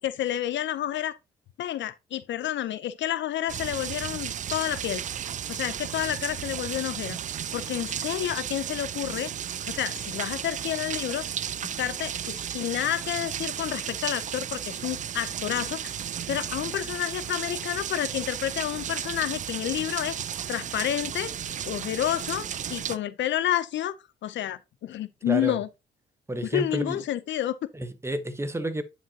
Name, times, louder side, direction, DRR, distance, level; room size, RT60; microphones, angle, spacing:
voice 1, 0.0-1.2 1.6-5.0 5.5-7.2 7.5-9.3 9.7-11.3 11.6-15.9 16.3-20.2 20.5-21.3 21.7-23.9 24.2-25.7 26.5-27.6, left 12 dB, 65° left, 0.6 m, -30 dB
sound 1, 3.5-23.0, right 9 dB, 40° right, 0.4 m, -34 dB
voice 2, 25.3-25.6 26.3-27.0 27.7-28.8, right 1 dB, 15° right, 0.9 m, -30 dB
9.5 x 5.1 x 2.8 m
cardioid pair, 90°, 20 cm